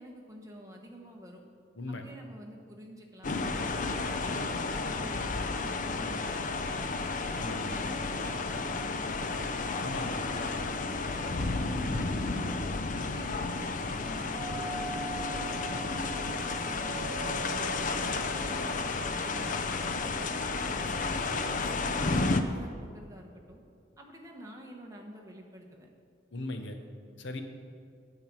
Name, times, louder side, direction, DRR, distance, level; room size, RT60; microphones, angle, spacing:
voice 1, 0.0-1.4 1.9-6.9 7.3-9.3 9.8-12.7 13.1-17.2 17.6-20.2 20.5-23.6 24.0-25.9, right 1 dB, 15° right, 0 dB, 1.2 m, -48 dB
sound 1, 3.2-22.4, left 3 dB, 40° left, 0.5 m, -32 dB
voice 2, 7.3-7.9 9.8-10.2 26.3-26.8 27.2-27.4, left 2 dB, 65° left, 6 dB, 1.0 m, -38 dB
Doorbell, 14.3-19.1, right 4 dB, ahead, 1.8 m, -43 dB
8.9 x 8.7 x 6.2 m, 2.3 s
head